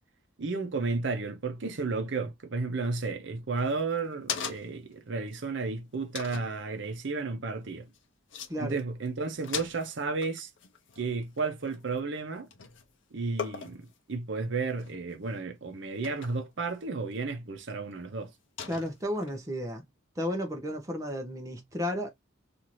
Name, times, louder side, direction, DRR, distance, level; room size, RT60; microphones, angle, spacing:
voice 1, 0.4-7.9 8.6-10.5 11.0-12.5 13.1-18.3, right 4 dB, 65° right, 0.6 m, -33 dB
sound 1, 3.6-4.9 5.4-5.5 6.1-6.5 7.9-8.0 8.3-8.5 8.8-9.1 9.3-12.2 12.5-12.9 13.4-13.9 14.7-15.2 16.0-16.5 17.1-17.2 18.6-19.3, left 7 dB, 65° left, 0.6 m, -39 dB
voice 2, 18.7-19.8 20.2-22.1, equal, 15° right, 0.6 m, -33 dB
2.7 x 2.5 x 3.0 m
head